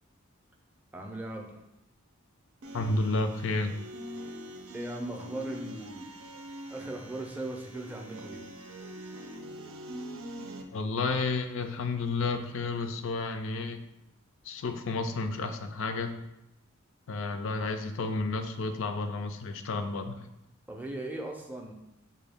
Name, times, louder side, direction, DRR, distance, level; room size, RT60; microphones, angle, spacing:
voice 1, 0.9-1.6 4.7-6.1 6.7-8.5 20.7-21.7, right 2 dB, 10° right, 1 dB, 0.4 m, -38 dB
sound 1, 2.6-10.6, equal, 85° right, 0.5 m, -43 dB
voice 2, 2.7-3.7 10.7-13.8 14.5-16.1 17.1-20.3, left 3 dB, 65° left, 8 dB, 0.4 m, -31 dB
5.1 x 2.2 x 3.4 m, 0.86 s
head